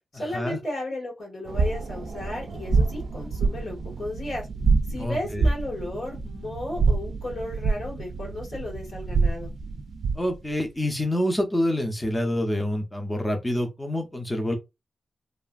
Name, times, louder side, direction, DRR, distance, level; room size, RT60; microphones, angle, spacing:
voice 1, 0.1-4.5 4.9-9.5, left 1 dB, 75° left, 1.8 m, -34 dB
sound 1, 1.5-10.4, right 4 dB, 75° right, 0.4 m, -27 dB
voice 2, 5.0-5.5 10.1-14.6, left 1 dB, 10° left, 0.5 m, -27 dB
3.1 x 2.4 x 2.4 m
wide cardioid pair, 130°, 0 cm